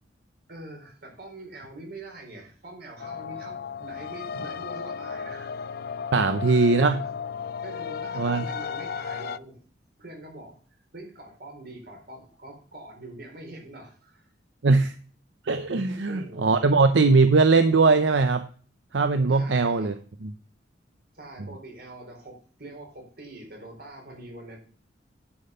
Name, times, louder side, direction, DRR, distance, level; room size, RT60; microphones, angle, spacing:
voice 1, 0.5-5.8 6.1-7.0 7.6-9.6 10.0-14.3 15.9-16.5 19.3-20.3 21.1-24.6, right 2 dB, 60° right, 1 dB, 4.1 m, -44 dB
sound 1, 3.0-9.4, left 6 dB, 60° left, 0.4 m, -34 dB
voice 2, 6.1-7.0 8.2-8.4 14.6-14.9 15.5-18.4 18.9-19.9 20.2-20.3, right 3 dB, 80° right, 9 dB, 0.7 m, -20 dB
10.0 x 5.7 x 5.5 m, 0.43 s
head